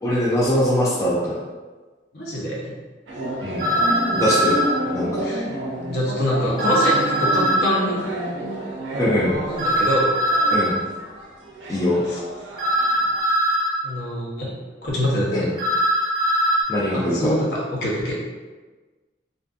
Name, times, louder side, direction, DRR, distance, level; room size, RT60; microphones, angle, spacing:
voice 1, 0.0-1.4 3.4-3.7 4.1-4.6 4.9-5.3 9.0-9.3 10.5-10.7 11.7-12.0 15.3-15.5 16.7-17.3, equal, 15° left, -7 dB, 0.3 m, -22 dB
voice 2, 2.1-2.7 4.8-4.9 5.2-5.4 5.9-8.0 9.5-10.2 12.1-12.2 13.8-14.5 14.8-15.5 16.9-17.4 17.8-18.1, equal, 60° left, -5 dB, 0.7 m, -24 dB
sound 1, 3.1-13.2, right 1 dB, 90° right, 0.4 m, -30 dB
sound 2, 3.6-4.7 6.6-7.7 9.6-10.7 12.6-13.7 15.6-16.6, equal, 25° right, 0.6 m, -21 dB
2.5 x 2.4 x 2.4 m, 1.3 s
head